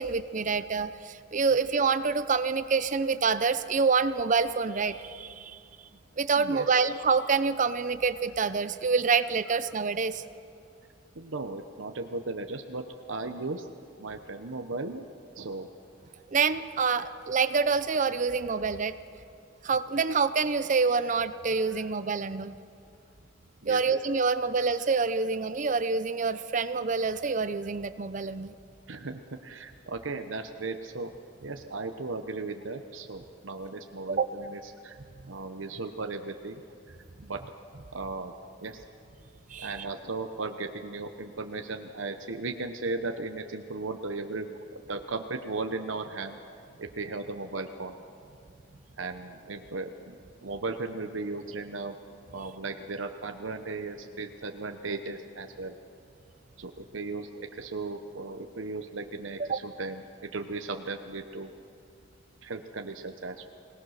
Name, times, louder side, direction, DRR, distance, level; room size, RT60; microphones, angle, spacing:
voice 1, 0.0-5.6 6.2-10.2 16.3-18.9 19.6-22.5 23.7-28.5 34.1-34.3 39.5-39.9 59.5-59.6, right 5 dB, 40° right, 13 dB, 0.6 m, -27 dB
voice 2, 6.4-6.8 11.2-15.1 15.4-15.7 21.7-21.8 23.6-23.8 28.9-31.1 31.4-34.9 35.3-36.6 36.9-37.0 37.2-37.4 37.9-38.3 38.6-38.8 39.6-46.4 46.8-47.9 49.0-50.1 50.4-52.0 52.3-55.7 56.6-61.5 62.4-63.5, right 3 dB, 90° right, 6 dB, 1.0 m, -36 dB
25.0 x 18.5 x 6.5 m, 2.5 s
head